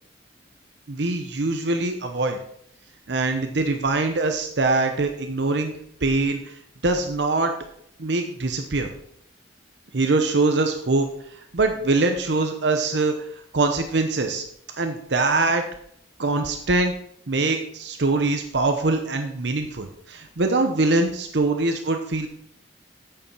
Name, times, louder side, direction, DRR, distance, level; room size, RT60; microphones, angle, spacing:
voice 1, 0.9-2.4 3.1-5.7 6.0-6.5 6.8-7.5 8.0-8.9 9.9-11.1 11.3-13.3 13.5-14.4 14.8-15.6 16.2-16.9 17.3-22.3, right 3 dB, 70° right, 5 dB, 0.9 m, -23 dB
8.8 x 6.9 x 5.5 m, 0.69 s
head